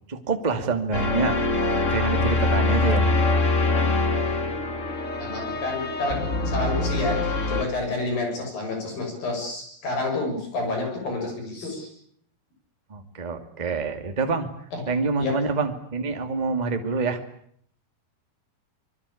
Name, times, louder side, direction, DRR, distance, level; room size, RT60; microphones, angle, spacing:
voice 1, 0.1-1.4 1.9-3.5 12.9-14.5 14.9-17.2, right 4 dB, 15° right, 6 dB, 1.4 m, -27 dB
sound 1, 0.9-7.6, left 3 dB, 30° left, 1.5 m, -24 dB
voice 2, 5.2-11.9 14.7-14.8 15.2-15.4, left 2 dB, 60° left, 3 dB, 8.4 m, -29 dB
25.5 x 22.5 x 8.6 m, 0.66 s
omnidirectional pair, 4.6 m